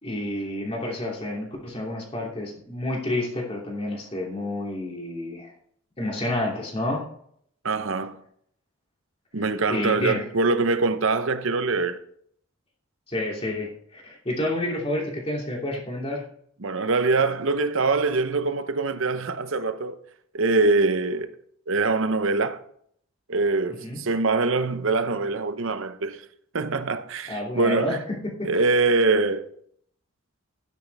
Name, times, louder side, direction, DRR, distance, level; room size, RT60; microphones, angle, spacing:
voice 1, 0.0-5.5 6.0-7.0 9.7-10.2 13.1-16.2 23.8-24.0 27.3-28.5, left 1 dB, 25° left, 2.9 m, -29 dB
voice 2, 7.6-8.2 9.3-12.0 16.6-20.0 20.3-21.3 21.7-22.6 23.3-26.3 26.5-28.0 28.4-29.5, right 3 dB, 65° right, 0.8 m, -23 dB
12.5 x 9.9 x 3.5 m
head